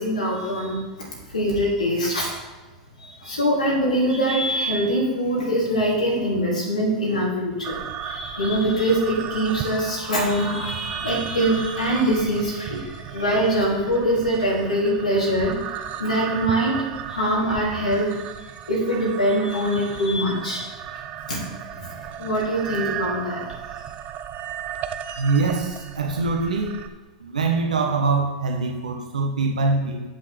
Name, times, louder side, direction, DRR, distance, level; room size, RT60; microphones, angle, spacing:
voice 1, 0.0-2.3 3.0-18.1 18.7-20.7 20.9-23.8, equal, 90° left, -4 dB, 2.7 m, -24 dB
sound 1, 7.6-26.9, right 10 dB, 40° right, 0.6 m, -35 dB
voice 2, 25.2-26.8 27.2-30.0, right 3 dB, 85° right, 1 dB, 1.1 m, -23 dB
10.0 x 5.6 x 3.3 m, 1.2 s
hypercardioid pair, 95°, 4 cm